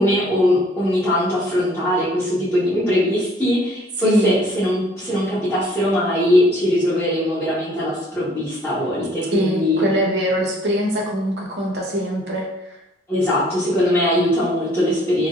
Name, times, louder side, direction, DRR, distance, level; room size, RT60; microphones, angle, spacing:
voice 1, 0.0-9.9 13.1-15.3, left 1 dB, 10° left, -15 dB, 1.0 m, -20 dB
voice 2, 4.0-4.4 9.3-12.8, equal, 65° right, -1 dB, 0.7 m, -22 dB
3.1 x 2.6 x 2.4 m, 0.88 s
head